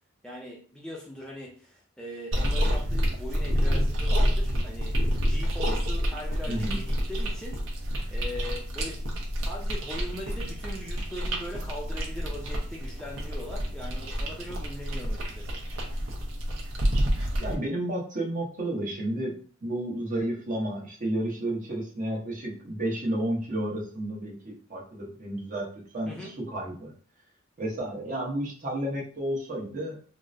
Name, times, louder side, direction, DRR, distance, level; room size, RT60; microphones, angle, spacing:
voice 1, 0.2-7.7 8.1-9.0 9.4-15.5 26.1-26.3, left 1 dB, 5° left, -4 dB, 0.4 m, -40 dB
sound 1, 2.3-17.6, equal, 75° right, 0.8 m, -28 dB
voice 2, 17.4-19.3 19.6-25.6 25.9-26.9 27.6-30.0, right 1 dB, 40° right, -3 dB, 0.9 m, -31 dB
3.6 x 2.1 x 2.6 m, 0.44 s
head